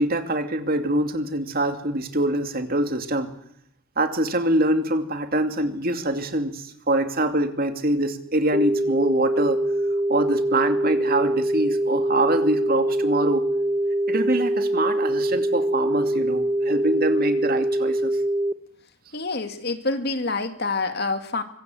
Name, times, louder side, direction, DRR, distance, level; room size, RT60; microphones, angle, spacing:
voice 1, 0.0-3.3 4.0-9.6 10.1-13.5 14.1-18.1, right 1 dB, 45° right, 7 dB, 2.5 m, -24 dB
sound 1, 8.5-18.5, right 1 dB, 15° right, 1.3 m, -24 dB
voice 2, 19.1-21.4, left 3 dB, 50° left, 7 dB, 2.3 m, -27 dB
25.0 x 23.5 x 7.8 m, 0.70 s
head